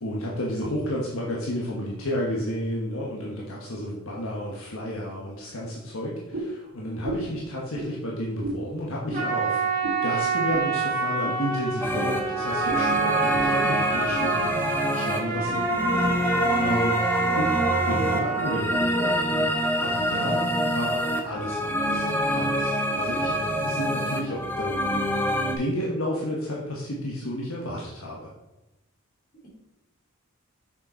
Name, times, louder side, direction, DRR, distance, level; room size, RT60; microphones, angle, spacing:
voice 1, 0.0-9.7 10.0-15.6 16.2-17.1 17.3-17.6 17.8-19.5 19.8-24.8 25.4-28.3, equal, 70° left, -3 dB, 1.3 m, -32 dB
sound 1, 6.3-6.6 7.0-7.3 7.7-7.9 8.4-8.6 9.1-9.3 9.8-10.0 10.5-10.7 11.2-11.4 11.9-12.1 12.7-12.8 13.4-13.5 13.8-14.2 14.7-14.9 15.5-15.6, right 2 dB, 65° right, 2.8 m, -34 dB
Trumpet, 9.1-18.6, right 5 dB, 35° right, 2.0 m, -27 dB
sound 2, 11.8-25.5, equal, 10° left, 0.8 m, -26 dB
voice 2, 15.5-16.2, left 1 dB, 40° left, -4 dB, 3.0 m, -38 dB
6.8 x 6.4 x 4.5 m, 0.99 s
head